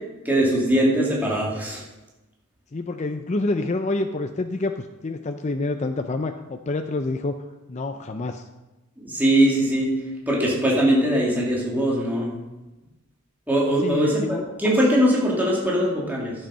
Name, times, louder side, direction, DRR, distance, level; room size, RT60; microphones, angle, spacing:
voice 1, 0.2-1.8 9.0-9.9 10.3-12.3 13.5-16.3, equal, 10° right, -4 dB, 2.3 m, -21 dB
voice 2, 2.7-7.3 7.7-8.5 13.8-14.4, left 2 dB, 30° left, 6 dB, 0.5 m, -27 dB
12.0 x 7.6 x 5.6 m, 1.1 s
head